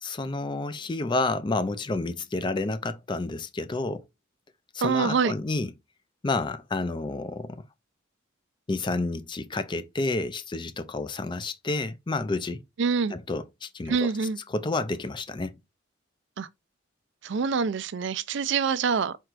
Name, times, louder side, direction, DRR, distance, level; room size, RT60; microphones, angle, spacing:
voice 1, 0.0-4.0 4.7-5.7 6.2-7.6 8.7-12.6 13.1-14.0 14.5-15.5, left 2 dB, 25° left, 0.4 m, -30 dB
voice 2, 4.8-5.3 12.8-13.1 13.9-14.4 16.4-16.5 17.2-19.2, right 5 dB, 60° right, 0.4 m, -25 dB
4.6 x 4.4 x 2.4 m
head